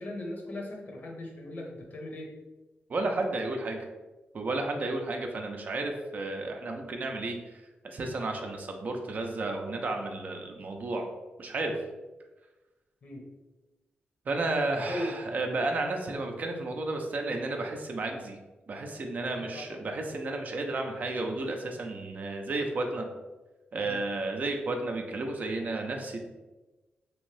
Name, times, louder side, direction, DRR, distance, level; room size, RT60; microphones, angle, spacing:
voice 1, 0.0-2.3 4.6-4.8 13.0-13.3 14.9-15.2 19.5-19.9 20.1-20.2 23.9-24.0, left 1 dB, 50° left, 0 dB, 0.7 m, -38 dB
voice 2, 2.9-3.8 4.3-11.0 11.4-11.8 14.3-18.4 18.7-23.1 23.7-26.2, right 2 dB, 50° right, 3 dB, 0.5 m, -32 dB
3.0 x 2.6 x 3.2 m, 1.1 s
wide cardioid pair, 100°, 4 cm